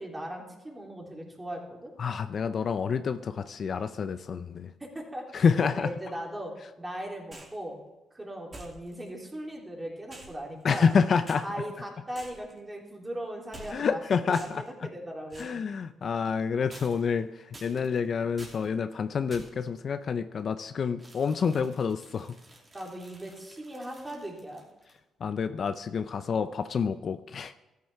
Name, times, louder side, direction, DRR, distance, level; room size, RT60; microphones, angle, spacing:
voice 1, 0.0-1.9 4.8-7.8 8.1-10.9 11.4-14.0 14.3-15.5 22.7-24.6, right 1 dB, 15° right, -1 dB, 3.2 m, -39 dB
voice 2, 2.0-4.7 5.3-5.9 10.6-11.4 13.7-14.6 15.4-22.3 25.2-27.5, left 6 dB, 50° left, 11 dB, 0.5 m, -28 dB
sound 1, 7.3-7.6 8.5-9.1 10.1-10.9 11.3-11.4 12.1-12.6 13.5-14.0 14.3-14.7 15.3-15.6 16.7-17.2 17.5-18.0 18.4-18.7 19.3-19.7 21.0-25.0, right 2 dB, 30° right, 2.9 m, -49 dB
13.5 x 9.5 x 3.5 m, 1.0 s
cardioid pair, 90°, 0 cm